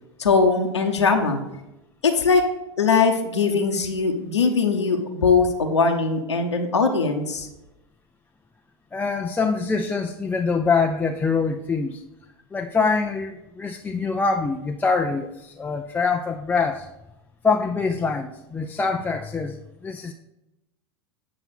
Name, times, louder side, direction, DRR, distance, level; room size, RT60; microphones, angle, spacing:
voice 1, 0.2-1.4 2.0-2.4 2.8-7.5, left 4 dB, 85° left, 3 dB, 1.0 m, -20 dB
voice 2, 8.9-12.0 12.5-16.9 17.4-20.1, left 4 dB, 10° left, 3 dB, 0.5 m, -24 dB
9.0 x 5.8 x 4.1 m, 0.92 s
figure-of-eight pair, 90°, 14 cm